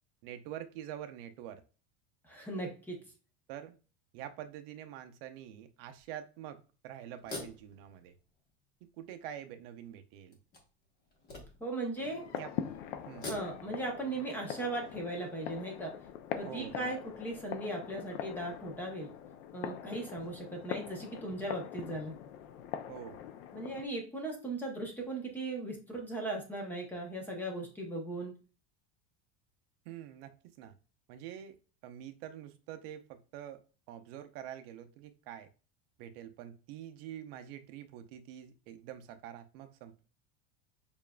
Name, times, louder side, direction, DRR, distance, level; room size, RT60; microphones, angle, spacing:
voice 1, 0.2-1.6 3.5-3.7 4.1-8.1 9.0-10.4 12.3-12.5 12.8-13.3 16.4-16.9 22.9-23.2 29.9-30.7 31.1-31.6 31.8-35.5 36.0-40.0, right 10 dB, 55° right, 7 dB, 0.6 m, -46 dB
voice 2, 2.2-3.0 11.6-12.2 13.2-15.9 16.4-19.1 19.5-22.2 23.5-28.3, right 2 dB, 5° left, 0 dB, 0.6 m, -38 dB
sound 1, 6.0-6.1 7.1-8.5 9.1-9.2 10.3-11.9 13.0-13.9, left 3 dB, 25° left, 1.0 m, -45 dB
sound 2, 12.0-23.9, left 9 dB, 65° left, 0.5 m, -43 dB
6.8 x 2.5 x 2.2 m, 0.35 s
supercardioid pair, 170°, 36 cm